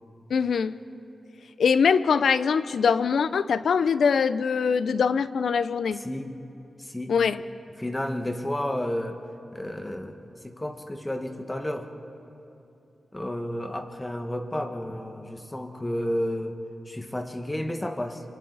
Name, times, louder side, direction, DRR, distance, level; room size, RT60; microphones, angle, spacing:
voice 1, 0.3-0.8 1.6-6.0 7.1-7.4, left 6 dB, 80° left, 15 dB, 0.6 m, -23 dB
voice 2, 5.9-6.3 6.8-7.1 7.8-9.2 9.5-10.2 10.4-11.9 13.1-16.6 16.9-18.2, left 1 dB, 15° left, 5 dB, 1.5 m, -31 dB
27.5 x 24.5 x 4.1 m, 2.9 s
cardioid pair, 85°, 0 cm